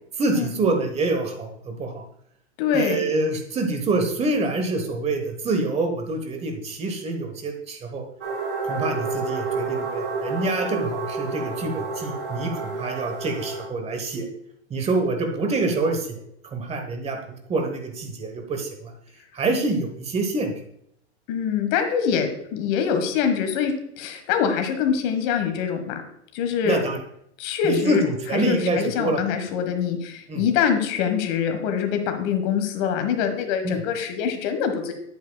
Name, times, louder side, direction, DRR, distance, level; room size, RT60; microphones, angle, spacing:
voice 1, 0.2-2.0 2.7-8.0 8.6-14.3 14.7-17.2 17.5-18.9 19.3-20.5 26.6-27.0 27.6-29.2 30.3-30.5 33.6-33.8, right 2 dB, 20° right, 5 dB, 1.1 m, -26 dB
voice 2, 2.6-3.0 21.3-26.0 26.3-26.8 27.4-28.0 28.3-34.9, left 7 dB, 45° left, 6 dB, 1.4 m, -24 dB
sound 1, 8.2-13.7, right 3 dB, 75° right, 2.3 m, -29 dB
9.2 x 8.2 x 2.3 m, 0.73 s
hypercardioid pair, 130°, 35 cm